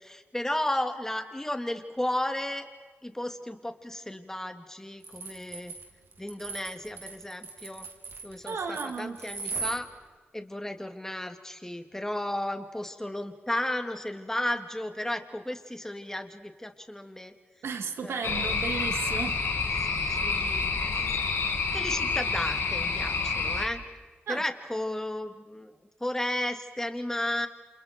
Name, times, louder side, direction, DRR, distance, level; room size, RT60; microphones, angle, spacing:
voice 1, 0.0-2.7 3.0-5.7 6.2-7.9 8.2-9.9 10.3-17.3 18.0-18.5 19.8-21.1 21.7-23.8 24.3-25.7 26.0-27.5, left 1 dB, 10° left, 6 dB, 2.6 m, -34 dB
sound 1, 5.0-9.8, right 4 dB, 65° right, 3.3 m, -38 dB
voice 2, 8.5-9.2 17.6-19.4 24.3-24.4, right 5 dB, 85° right, 5 dB, 2.5 m, -34 dB
sound 2, 18.2-23.7, left 4 dB, 85° left, 2.7 m, -28 dB
29.5 x 28.0 x 4.6 m, 1.4 s
cardioid pair, 65°, 4 cm